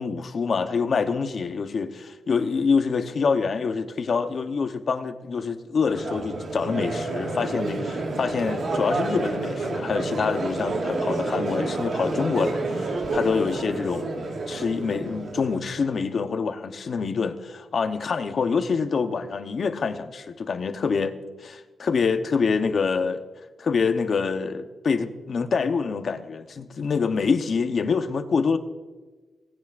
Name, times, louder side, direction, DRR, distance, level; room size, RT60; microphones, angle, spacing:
voice 1, 0.0-14.1 14.5-21.1 21.4-23.2 23.6-28.6, left 5 dB, 50° left, 0.9 m, -26 dB
Crowd, 5.8-16.0, right 2 dB, 55° right, 1.8 m, -29 dB
19.5 x 9.6 x 2.5 m
wide cardioid pair, 135°, 0 cm